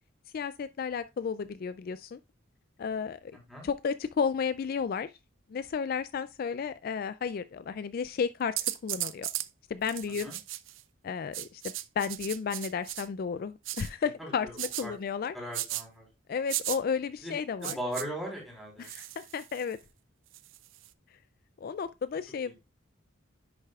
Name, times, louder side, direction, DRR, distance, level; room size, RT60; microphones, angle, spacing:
voice 1, 0.3-2.2 2.8-3.3 3.6-5.1 5.5-9.3 9.7-10.3 11.0-11.6 12.0-15.3 16.3-17.8 18.8-19.8 21.6-22.5, left 6 dB, 45° left, 0.3 m, -33 dB
voice 2, 3.3-3.7 10.2-10.4 14.2-14.9 15.3-16.1 17.2-17.3 17.6-18.9 22.5-22.6, equal, ahead, 3.7 m, -39 dB
sound 1, 8.6-9.5 9.8-10.8 11.3-13.1 13.6-13.9 14.6-14.8 15.5-15.8 16.5-16.8 17.6-18.0 18.8-19.7 20.3-20.9, right 15 dB, 70° right, 0.5 m, -36 dB
10.5 x 6.5 x 2.4 m
head